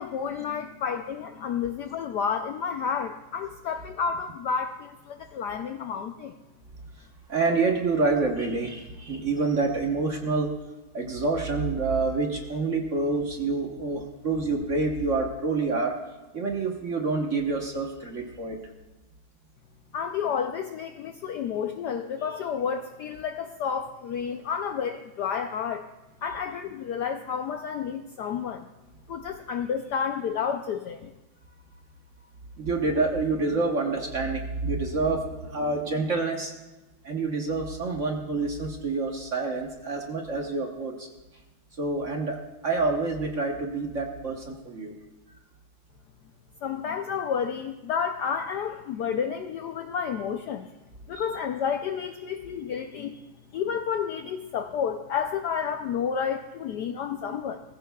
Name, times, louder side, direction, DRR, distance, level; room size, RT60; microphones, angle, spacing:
voice 1, 0.0-6.4 19.9-25.9 26.2-28.7 29.1-31.1 46.6-50.7 51.1-53.2 53.5-57.6, left 7 dB, 75° left, 6 dB, 1.0 m, -30 dB
voice 2, 7.3-10.5 10.9-16.0 16.3-18.6 32.6-36.5 37.0-41.1 41.8-44.9 51.1-51.2, right 3 dB, 45° right, 2 dB, 1.2 m, -27 dB
20.0 x 15.0 x 2.3 m, 1.1 s
omnidirectional pair, 2.3 m